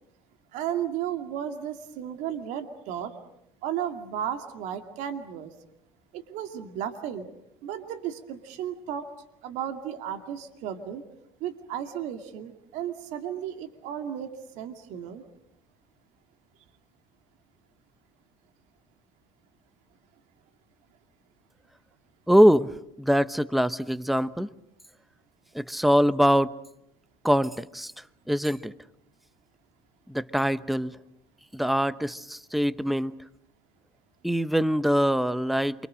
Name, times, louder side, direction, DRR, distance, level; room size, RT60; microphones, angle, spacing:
voice 1, 0.5-3.1 3.6-5.5 6.1-7.3 7.6-9.1 9.4-11.0 11.4-14.3 14.6-15.2, right 9 dB, 70° right, 7 dB, 2.4 m, -34 dB
voice 2, 22.3-22.7 23.0-24.5 25.5-26.5 27.2-27.9 28.3-28.7 30.1-30.9 31.5-33.2 34.2-35.9, equal, ahead, 16 dB, 1.0 m, -23 dB
29.0 x 25.0 x 6.4 m, 0.81 s
supercardioid pair, 80°, 13 cm